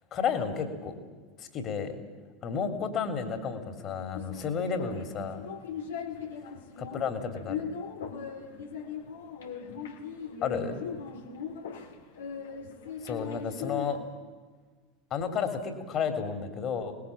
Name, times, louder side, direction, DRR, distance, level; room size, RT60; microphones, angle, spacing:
voice 1, 0.1-1.0 1.4-2.0 2.4-5.5 6.8-7.6 10.4-10.8 13.0-14.0 15.1-16.9, left 6 dB, 40° left, 8 dB, 3.5 m, -32 dB
sound 1, 4.1-14.0, left 6 dB, 70° left, 2.4 m, -39 dB
24.5 x 20.0 x 8.8 m, 1.4 s
figure-of-eight pair, 80°, 0 cm